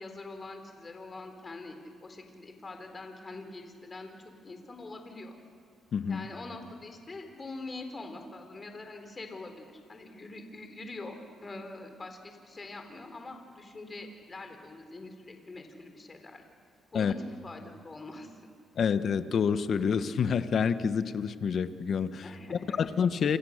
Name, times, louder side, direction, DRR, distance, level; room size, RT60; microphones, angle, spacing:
voice 1, 0.0-4.1 4.4-5.4 6.1-11.2 11.4-16.5 16.9-18.3 22.2-22.9, left 2 dB, 30° left, 5 dB, 4.0 m, -44 dB
voice 2, 5.9-6.3 16.9-17.1 18.8-22.2 22.5-23.4, left 6 dB, 55° left, 11 dB, 1.3 m, -28 dB
28.5 x 28.0 x 6.6 m, 2.1 s
cardioid pair, 90°, 0 cm